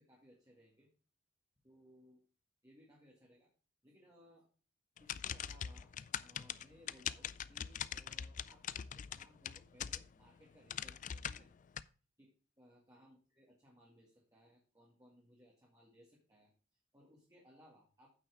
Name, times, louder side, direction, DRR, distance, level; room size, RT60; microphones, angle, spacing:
voice 1, 0.1-0.9 1.6-2.2 2.6-3.5 3.8-4.5 5.0-5.9 6.2-11.5 12.2-12.3 12.6-16.5 16.9-18.1, equal, 20° right, -4 dB, 2.1 m, -64 dB
sound 1, 5.0-10.3 10.7-11.8, left 9 dB, 40° left, 0.3 m, -42 dB
9.0 x 5.9 x 4.9 m, 0.37 s
head